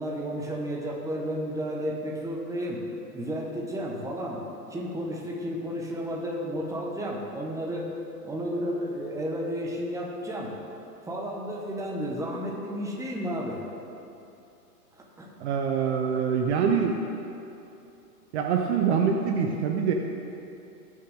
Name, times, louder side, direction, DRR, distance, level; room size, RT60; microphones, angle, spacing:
voice 1, 0.0-2.8 3.1-4.4 4.7-7.9 8.2-10.6 11.0-13.6 14.9-15.3, equal, 5° right, -2 dB, 1.3 m, -32 dB
voice 2, 15.4-17.0 18.3-19.9, right 6 dB, 45° right, 2 dB, 0.9 m, -25 dB
19.0 x 6.5 x 3.7 m, 2.7 s
hypercardioid pair, 115°, 48 cm